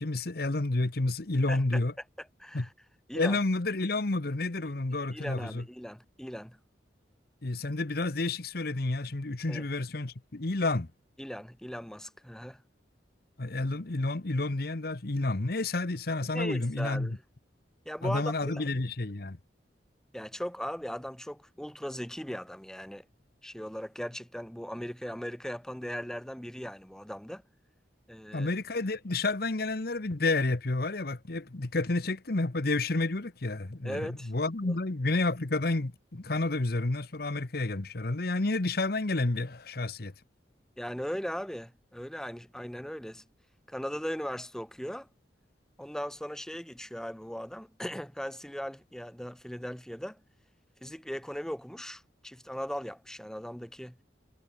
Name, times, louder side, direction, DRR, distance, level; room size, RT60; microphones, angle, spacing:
voice 1, 0.0-1.9 2.5-2.7 3.1-5.6 7.4-10.9 13.4-17.2 18.0-19.4 28.3-40.1, left 2 dB, 55° left, 1.1 m, -30 dB
voice 2, 2.2-2.7 3.1-3.4 5.1-6.6 9.5-9.7 11.2-12.6 16.3-17.2 17.8-18.7 20.1-23.0 23.4-27.4 28.1-28.5 33.8-34.3 34.6-34.7 40.8-43.2 43.7-45.1 45.8-50.2 50.8-54.0, equal, 5° left, 1.1 m, -38 dB
head